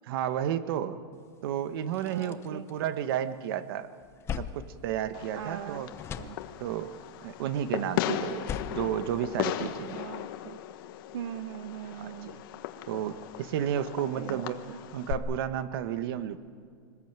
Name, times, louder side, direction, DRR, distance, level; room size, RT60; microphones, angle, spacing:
voice 1, 0.1-1.0 1.4-3.9 4.4-5.9 6.6-6.9 7.2-10.0 12.0-12.4 12.9-14.6 14.9-16.4, right 10 dB, 60° right, 11 dB, 1.4 m, -32 dB
sound 1, 1.3-1.4 1.7-3.4 3.8-5.6 5.9-6.9 8.2-9.9, left 8 dB, 20° left, 0.8 m, -41 dB
voice 2, 2.0-2.7 5.3-5.8 6.2-6.4 9.9-10.6 11.1-12.3 14.2-14.8, right 11 dB, 85° right, 12 dB, 0.8 m, -40 dB
Fireworks, 5.1-15.1, left 12 dB, 55° left, 1.4 m, -37 dB
24.5 x 19.5 x 9.0 m, 2.1 s
supercardioid pair, 165°, 13 cm